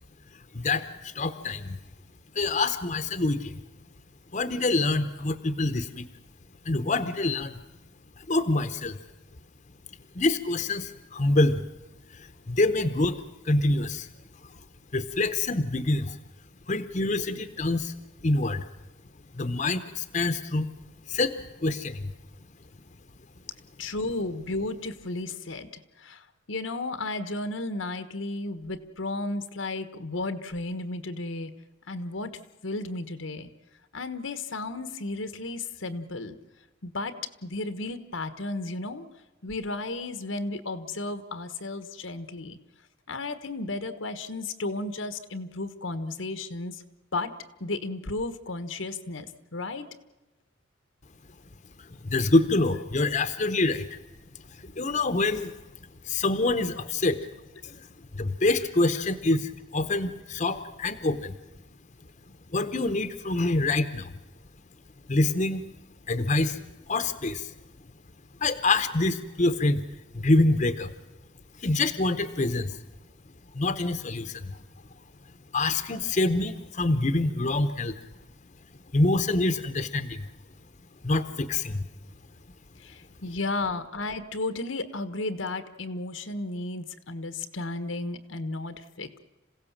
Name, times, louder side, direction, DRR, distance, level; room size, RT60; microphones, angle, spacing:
voice 1, 0.5-1.8 2.3-3.6 4.3-6.1 6.6-7.6 8.2-9.0 10.1-11.6 12.1-14.1 14.5-14.6 14.9-16.2 16.7-17.9 18.2-18.7 19.3-20.7 21.1-22.1 51.8-54.0 54.6-55.5 56.0-57.2 57.6-57.9 58.1-61.4 62.5-64.1 65.1-65.6 66.1-66.6 66.9-67.5 68.4-69.8 70.1-70.9 71.6-72.8 73.5-74.6 75.5-77.9 78.9-80.3 81.0-81.8, left 2 dB, 40° left, 10 dB, 0.9 m, -26 dB
voice 2, 23.8-31.5 31.9-33.5 33.9-36.4 36.8-37.2 37.4-39.1 39.4-42.6 43.1-46.8 47.1-47.3 47.6-49.3 49.5-49.9 82.8-89.2, left 2 dB, 85° left, 10 dB, 1.4 m, -33 dB
27.0 x 16.5 x 7.4 m, 1.1 s
head